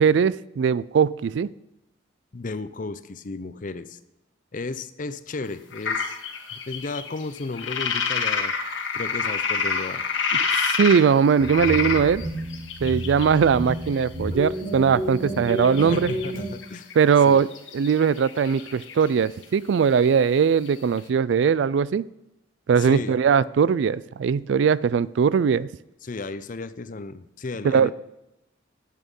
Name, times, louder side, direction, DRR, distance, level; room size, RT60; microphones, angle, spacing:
voice 1, 0.0-1.5 10.6-12.2 12.8-16.1 17.0-17.5 17.7-22.0 22.7-25.7 27.6-27.9, right 6 dB, 65° right, 20 dB, 0.3 m, -20 dB
voice 2, 2.3-4.0 4.5-6.2 6.5-8.5 8.9-10.0 15.8-16.9 17.2-17.4 22.8-23.2 26.0-27.9, left 3 dB, 40° left, 13 dB, 0.6 m, -34 dB
sound 1, 5.7-11.0 11.3-13.9 15.5-16.4 16.6-16.9 17.2-19.4 19.7-19.8 20.0-20.1 20.4-20.5 20.7-20.8 21.0-21.1, left 5 dB, 70° left, 1.5 m, -28 dB
sound 2, 11.4-16.4, right 1 dB, 45° right, 4.2 m, -31 dB
11.0 x 8.4 x 5.4 m, 0.90 s
head